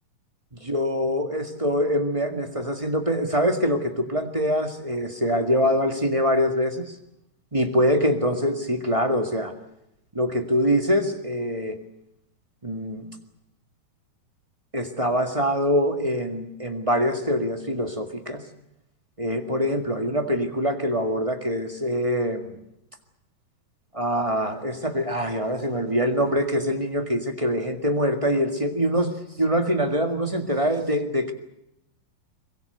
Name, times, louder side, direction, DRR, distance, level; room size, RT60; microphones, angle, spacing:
voice 1, 0.6-6.9 7.5-9.5 10.1-11.7 12.6-13.1 14.7-18.4 19.2-22.5 23.9-29.1 29.4-31.3, equal, 20° right, 5 dB, 0.9 m, -24 dB
23.5 x 22.5 x 8.0 m, 0.81 s
omnidirectional pair, 4.0 m